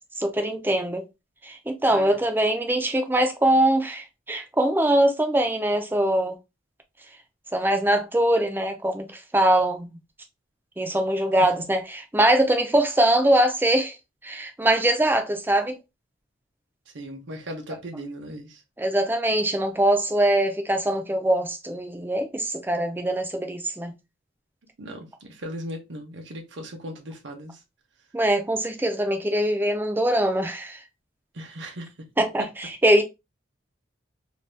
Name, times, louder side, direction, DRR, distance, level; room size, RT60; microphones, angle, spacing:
voice 1, 0.2-1.1 1.4-6.4 7.5-10.0 10.8-14.0 14.2-15.8 18.8-23.9 28.1-30.8 32.2-33.0, right 1 dB, 10° right, 0.4 m, -22 dB
voice 2, 16.9-18.6 24.8-27.6 31.3-32.1, equal, 65° right, 0.8 m, -37 dB
2.6 x 2.3 x 3.2 m
head